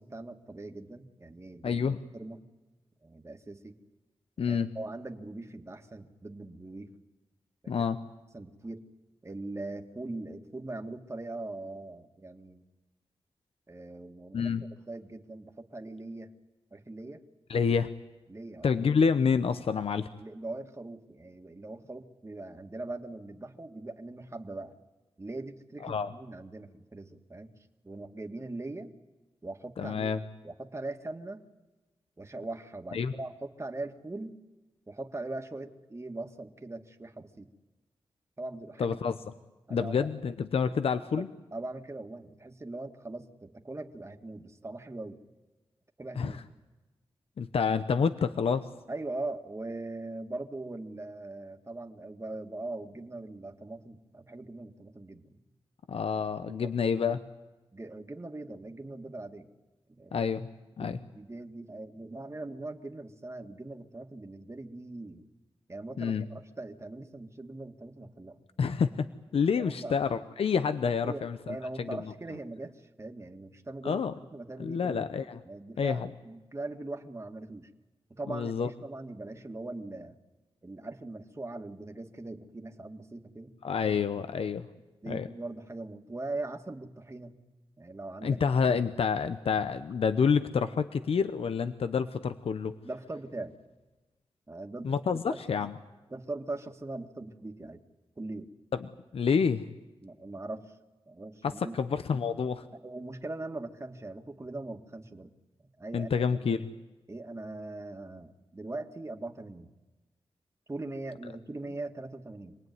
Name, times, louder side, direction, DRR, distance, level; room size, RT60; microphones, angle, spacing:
voice 1, 0.0-1.8 2.1-2.4 3.0-3.8 4.4-7.0 7.6-7.7 8.3-8.9 9.2-12.6 13.7-14.5 14.9-16.3 16.7-17.2 18.3-18.8 20.2-24.8 25.2-27.5 27.8-28.9 29.4-30.1 30.4-31.4 32.2-34.4 34.9-37.5 38.4-39.0 39.7-40.1 41.1-45.2 46.0-46.4 48.9-55.4 56.5-56.7 57.7-59.5 59.9-60.3 60.8-65.3 65.7-68.4 69.6-70.0 71.1-75.0 75.4-77.7 78.2-80.1 80.6-83.5 85.0-87.4 87.8-88.4 92.8-93.6 94.5-94.9 95.3-95.6 96.1-97.8 98.2-98.5 100.0-100.7 101.1-101.8 102.7-105.3 105.8-106.2 107.1-109.7 110.7-112.6, right 2 dB, 30° right, 5 dB, 2.0 m, -41 dB
voice 2, 1.6-2.0 4.4-4.7 7.7-8.0 14.3-14.6 17.5-17.9 18.6-20.1 25.8-26.1 29.8-30.2 32.9-33.1 38.8-39.2 39.7-41.3 46.2-46.4 47.4-48.7 55.9-57.2 60.1-60.5 60.8-61.0 66.0-66.2 68.6-69.1 69.3-72.0 73.8-74.1 74.6-75.4 75.8-76.1 78.3-78.7 83.6-84.7 85.1-85.3 88.2-92.8 94.8-95.7 98.7-99.7 101.4-102.7 105.9-106.7, left 6 dB, 80° left, 10 dB, 0.9 m, -28 dB
26.0 x 19.5 x 9.5 m, 1.2 s
cardioid pair, 60°, 10 cm